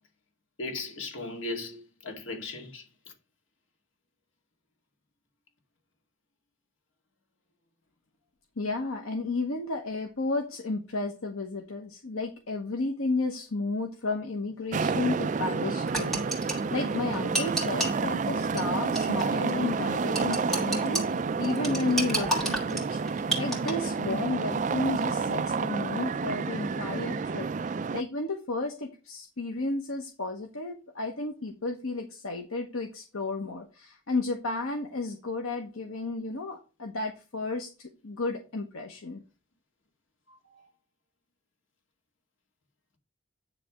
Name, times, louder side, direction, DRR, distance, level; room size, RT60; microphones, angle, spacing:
voice 1, 0.6-2.9 25.8-26.1 40.3-40.7, left 2 dB, 70° left, 2.1 m, -38 dB
voice 2, 8.6-23.0 23.4-27.5 27.9-39.2, left 3 dB, 90° left, 1.0 m, -32 dB
sound 1, 14.7-28.0, right 4 dB, 35° right, 0.3 m, -29 dB
sound 2, 15.9-18.0 18.6-18.7 19.0-19.2 19.5-19.6 20.2-21.0 21.4-23.7, right 1 dB, ahead, 2.2 m, -30 dB
10.0 x 3.4 x 6.1 m
head